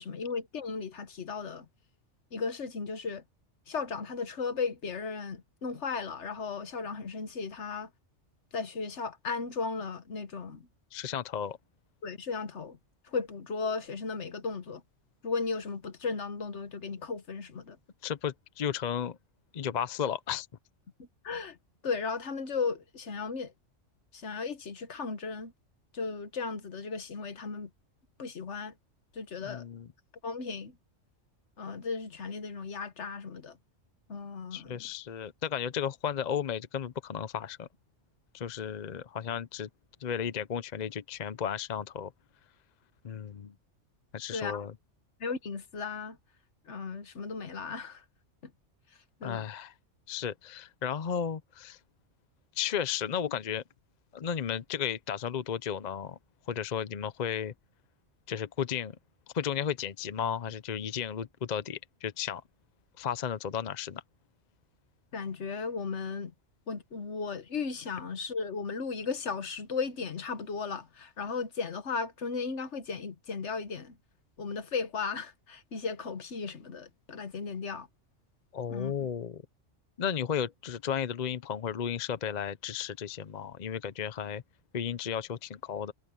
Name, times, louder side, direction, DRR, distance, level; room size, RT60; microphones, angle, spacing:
voice 1, 0.0-1.6 2.3-3.2 3.7-7.9 8.5-10.7 12.0-12.8 13.0-14.8 15.2-17.8 21.0-21.6 21.8-23.5 24.1-25.5 25.9-27.7 28.2-28.7 29.1-29.6 30.2-30.8 31.6-33.6 34.1-34.9 44.3-44.7 45.2-46.2 46.7-48.0 49.2-49.4 65.1-66.3 66.7-74.0 74.4-77.9 78.7-79.1, left 5 dB, 70° left, 1.5 m, -35 dB
voice 2, 10.9-11.6 18.0-19.2 19.5-20.5 29.4-29.9 34.5-37.7 38.3-39.7 40.0-42.1 43.0-43.5 44.1-44.7 49.2-49.7 50.1-51.8 52.6-53.6 54.1-56.2 56.5-57.5 58.3-59.0 59.3-62.4 63.0-64.0 78.5-79.4 80.0-84.4 84.7-85.9, left 8 dB, 45° left, 0.7 m, -34 dB
omnidirectional pair, 1.3 m